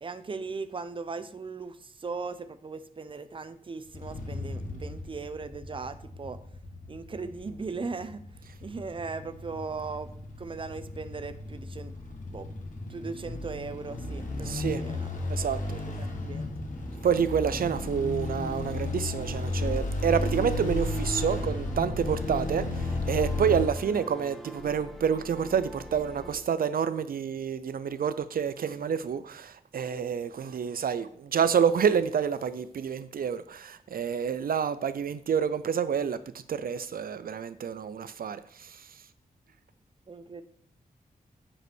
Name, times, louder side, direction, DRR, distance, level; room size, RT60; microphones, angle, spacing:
voice 1, 0.0-6.4 6.9-8.2 8.6-10.1 10.4-11.9 12.3-12.5 12.9-15.1 15.7-16.5 40.1-40.4, right 4 dB, 35° right, 13 dB, 0.6 m, -38 dB
sound 1, 3.9-23.7, left 2 dB, 60° left, 2.1 m, -34 dB
voice 2, 14.4-14.8 15.3-15.8 17.0-36.2 36.5-39.0, right 7 dB, 75° right, 13 dB, 0.5 m, -28 dB
sound 2, 20.8-26.3, equal, ahead, 1.3 m, -45 dB
9.7 x 5.4 x 6.1 m, 0.66 s
wide cardioid pair, 150°, 15 cm